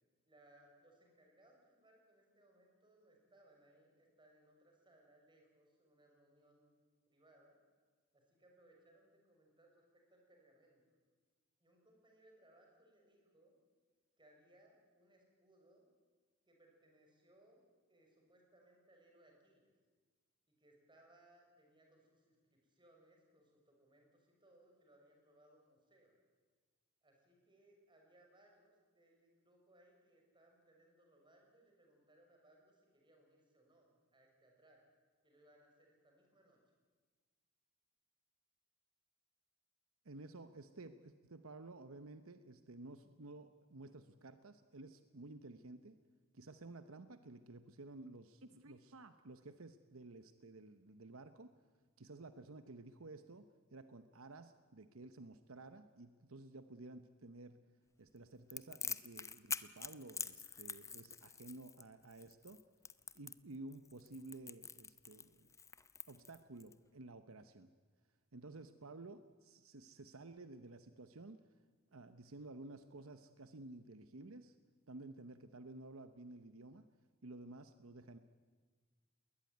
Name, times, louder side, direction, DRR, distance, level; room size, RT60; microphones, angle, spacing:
voice 1, 0.3-6.7 7.1-7.6 8.1-11.0 11.6-13.6 14.2-15.9 16.4-17.6 17.9-19.7 20.5-26.1 27.0-34.8 35.2-36.6, right 1 dB, 20° right, 1 dB, 6.5 m, -68 dB
voice 2, 40.0-46.0 46.3-51.5 52.0-57.6 58.0-62.6 63.1-65.5 66.1-67.7 68.3-71.4 71.9-74.5 74.9-76.9 77.2-78.2, right 2 dB, 70° right, 10 dB, 1.0 m, -53 dB
Crackle, 58.5-66.7, left 5 dB, 15° left, 0.7 m, -46 dB
20.5 x 20.0 x 9.3 m, 1.4 s
head